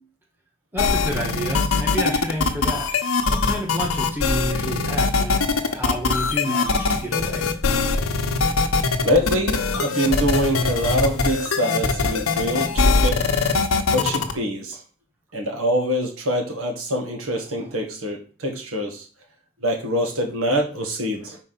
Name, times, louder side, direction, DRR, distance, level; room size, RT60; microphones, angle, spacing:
voice 1, 0.7-7.5 17.6-17.7, equal, 10° right, -1 dB, 1.4 m, -30 dB
sound 1, 0.8-14.3, left 4 dB, 85° left, 0.9 m, -22 dB
voice 2, 8.8-13.2 13.9-14.8 15.3-19.1 19.6-21.4, equal, 85° right, 1 dB, 1.7 m, -24 dB
4.7 x 4.5 x 5.8 m, 0.39 s
head